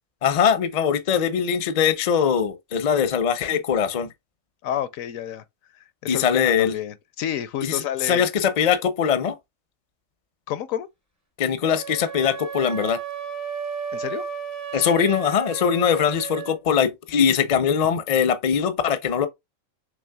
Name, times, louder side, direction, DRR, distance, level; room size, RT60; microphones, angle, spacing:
voice 1, 0.2-4.1 6.1-6.7 7.6-9.4 11.4-13.0 14.7-19.3, left 7 dB, 45° left, 0.5 m, -21 dB
voice 2, 4.6-5.4 5.8-8.3 10.5-10.9 13.9-14.2, left 10 dB, 80° left, 1.0 m, -30 dB
sound 1, 11.6-16.6, right 7 dB, 20° right, 0.6 m, -33 dB
6.1 x 3.5 x 2.2 m
omnidirectional pair, 1.4 m